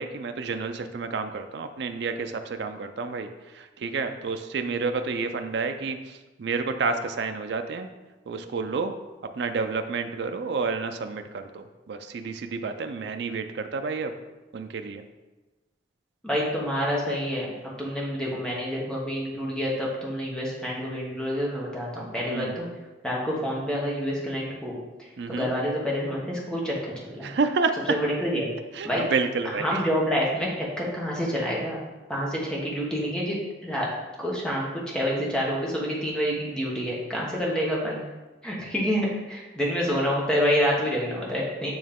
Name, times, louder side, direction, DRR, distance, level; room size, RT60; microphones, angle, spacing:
voice 1, 0.0-3.3 3.5-7.9 8.3-8.9 9.3-14.1 14.5-15.0 22.3-22.6 25.2-25.5 27.2-27.8 28.7-29.8, right 4 dB, 65° right, 7 dB, 0.4 m, -30 dB
voice 2, 16.2-22.6 23.0-24.7 25.0-27.3 27.9-28.5 28.8-29.0 29.4-31.8 32.1-33.9 34.2-38.0 38.4-41.7, equal, 5° left, -4 dB, 1.1 m, -28 dB
8.7 x 3.1 x 3.6 m, 1.1 s
head